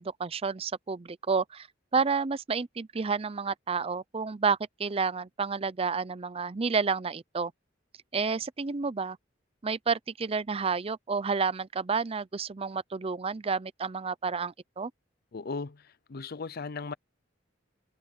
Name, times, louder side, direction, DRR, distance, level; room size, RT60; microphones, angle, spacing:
voice 1, 0.0-1.7 1.9-7.5 8.1-9.2 9.6-14.9, right 5 dB, 30° right, 0.5 m, -30 dB
voice 2, 15.3-16.9, left 4 dB, 50° left, 0.6 m, -37 dB
head